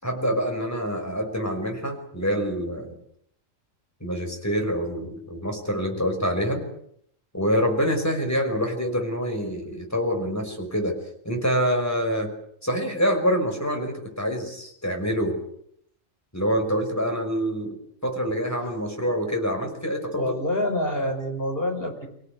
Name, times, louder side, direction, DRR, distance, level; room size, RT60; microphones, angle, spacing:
voice 1, 0.0-3.0 4.0-6.6 7.3-10.9 11.2-12.3 12.6-15.4 16.3-17.8 18.0-20.4, equal, 10° left, 3 dB, 5.7 m, -26 dB
voice 2, 20.1-22.1, left 1 dB, 45° left, 3 dB, 5.8 m, -27 dB
26.0 x 17.0 x 9.6 m, 0.71 s
omnidirectional pair, 1.3 m